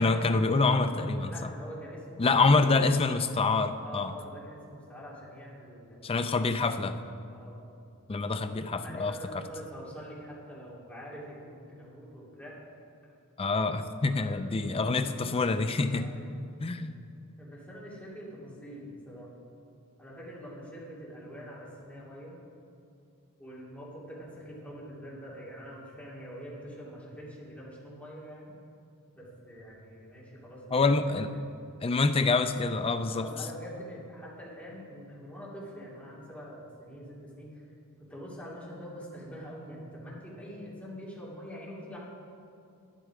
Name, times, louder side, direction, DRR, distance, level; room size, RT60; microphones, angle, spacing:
voice 1, 0.0-1.5 2.2-4.1 6.0-7.0 8.1-9.1 13.4-16.1 16.6-16.9 30.7-31.3 31.8-33.3, left 3 dB, 25° left, 9 dB, 0.4 m, -26 dB
voice 2, 1.2-2.6 3.8-6.2 6.6-7.6 8.8-12.6 14.1-15.2 16.0-16.4 17.4-19.3 20.0-22.4 23.4-28.5 29.1-30.8 31.3-31.5 33.0-37.7 38.0-42.0, equal, 5° left, -7 dB, 2.9 m, -45 dB
11.5 x 11.0 x 5.0 m, 2.5 s
head